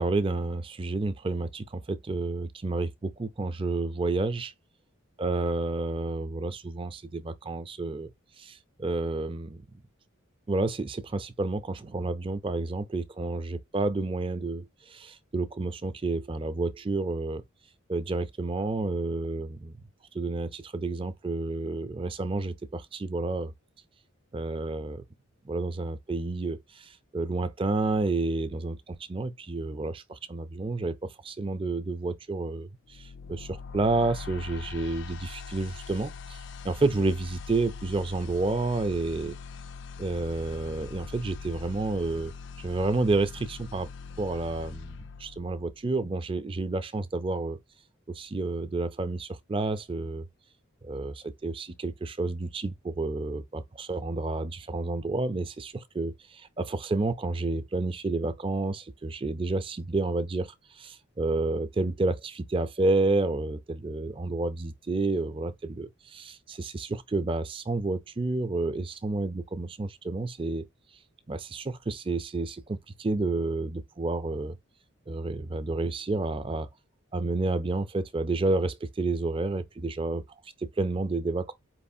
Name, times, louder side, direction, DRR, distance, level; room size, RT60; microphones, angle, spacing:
voice 1, 0.0-4.5 5.2-8.1 8.4-9.6 10.5-17.4 17.9-19.7 20.1-23.5 24.3-25.0 25.5-31.0 31.2-33.1 33.7-36.4 36.6-39.3 40.0-42.3 42.6-43.9 44.2-47.6 48.1-50.2 50.8-70.7 71.3-74.6 75.1-76.7 77.1-80.2 80.8-81.5, right 2 dB, 25° right, 0.4 m, -30 dB
sound 1, 32.9-45.9, left 5 dB, 55° left, 0.3 m, -42 dB
4.8 x 3.1 x 2.6 m
head